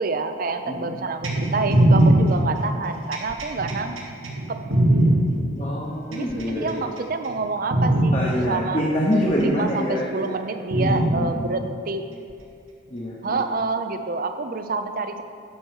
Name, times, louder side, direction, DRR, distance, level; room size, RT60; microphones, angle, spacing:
voice 1, 0.0-3.9 4.5-4.6 6.1-8.8 9.4-12.1 13.2-15.2, right 3 dB, 45° right, 8 dB, 0.5 m, -28 dB
sound 1, 1.2-5.2 6.1-6.8 7.2-7.4 7.7-8.2 9.3-9.4 10.7-11.2 12.3-12.4, right 1 dB, 75° right, 1.3 m, -19 dB
voice 2, 5.6-6.8 7.9-10.1 10.7-11.4 12.9-13.4, equal, 30° left, -4 dB, 0.9 m, -25 dB
10.0 x 4.5 x 6.3 m, 2.5 s
head